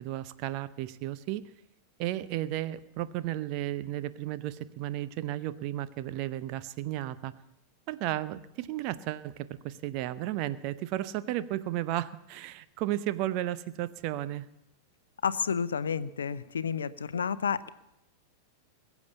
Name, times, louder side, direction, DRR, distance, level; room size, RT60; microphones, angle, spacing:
voice 1, 0.0-1.4 2.0-7.3 7.9-14.5, right 14 dB, 45° right, 14 dB, 0.8 m, -34 dB
voice 2, 15.2-17.7, left 7 dB, 70° left, 16 dB, 0.7 m, -30 dB
21.5 x 7.3 x 8.2 m, 0.82 s
figure-of-eight pair, 90°, 0 cm